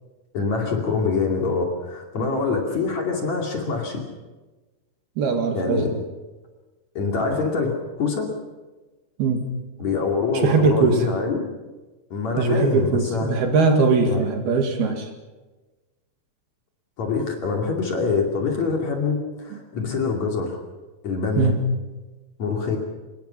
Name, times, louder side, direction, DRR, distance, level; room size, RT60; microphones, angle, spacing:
voice 1, 0.3-4.0 5.5-5.9 7.0-8.3 9.8-11.4 12.1-13.3 14.0-14.3 17.0-20.6 21.0-21.5 22.4-22.8, left 4 dB, 45° left, 2 dB, 3.3 m, -25 dB
voice 2, 5.2-6.0 9.2-9.5 10.4-11.1 12.4-15.1 21.4-21.6, right 4 dB, 60° right, 4 dB, 3.7 m, -20 dB
25.0 x 21.5 x 5.8 m, 1.2 s
omnidirectional pair, 5.3 m